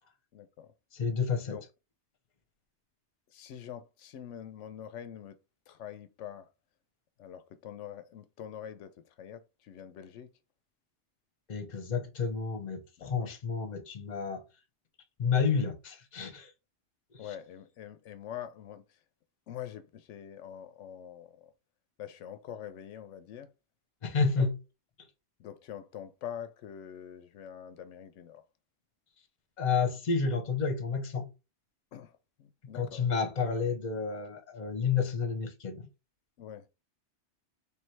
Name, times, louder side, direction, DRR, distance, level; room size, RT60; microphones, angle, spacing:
voice 1, 0.3-0.7 1.5-1.6 3.3-5.4 5.7-6.5 7.2-10.3 13.0-13.3 17.2-18.8 19.5-21.5 22.0-23.5 24.1-24.5 25.4-28.4 31.9-33.1 36.4-36.7, left 9 dB, 85° left, 0.9 m, -45 dB
voice 2, 0.9-1.6 11.5-14.4 15.2-16.5 24.0-24.6 29.6-31.3 32.7-35.9, left 5 dB, 40° left, 1.0 m, -30 dB
3.3 x 3.2 x 4.5 m
omnidirectional pair, 1.2 m